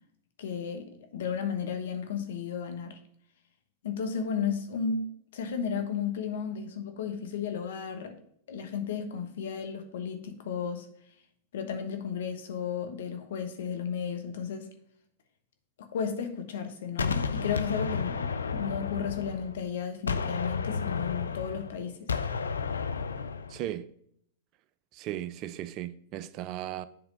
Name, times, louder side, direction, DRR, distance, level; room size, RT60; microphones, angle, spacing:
voice 1, 0.4-3.0 3.8-8.1 8.5-10.9 11.5-14.7 15.8-22.1, left 6 dB, 70° left, 1.1 m, -34 dB
Gunshot gunfire, 17.0-19.7 20.1-23.6, left 5 dB, 90° left, 0.4 m, -32 dB
voice 2, 23.5-23.9 24.9-26.9, right 12 dB, 45° right, 0.4 m, -36 dB
7.7 x 3.4 x 5.3 m
hypercardioid pair, 105°, 0 cm